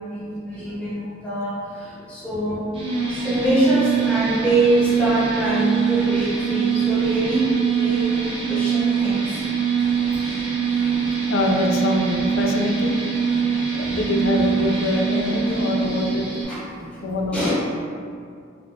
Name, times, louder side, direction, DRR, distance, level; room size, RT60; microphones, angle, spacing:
voice 1, 0.1-2.6 3.1-9.4 10.1-10.4 13.4-14.0 15.7-17.5, right 1 dB, 5° left, -10 dB, 0.9 m, -25 dB
sound 1, 2.7-16.4, right 6 dB, 30° right, 0.6 m, -23 dB
voice 2, 11.3-13.0 13.7-16.2 17.0-17.5, left 2 dB, 75° left, 1 dB, 0.4 m, -24 dB
3.4 x 2.0 x 2.7 m, 2.2 s
head